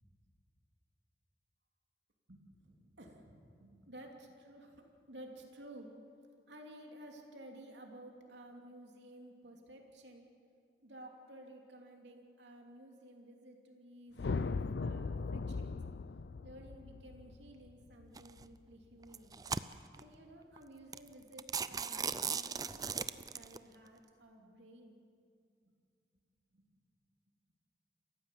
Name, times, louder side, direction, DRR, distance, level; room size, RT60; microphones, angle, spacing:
voice 1, 2.3-5.9 6.5-10.3 10.8-15.8 16.4-19.4 20.0-25.0 25.6-25.7 26.5-26.7, right 1 dB, 85° right, 1 dB, 3.0 m, -54 dB
sound 1, 14.2-18.6, left 4 dB, 75° left, 0.5 m, -39 dB
sound 2, 18.2-18.4 19.0-20.0 20.6-20.7 20.9-21.1 21.4-23.6, right 6 dB, 20° right, 0.4 m, -37 dB
27.5 x 15.0 x 7.6 m, 2.4 s
head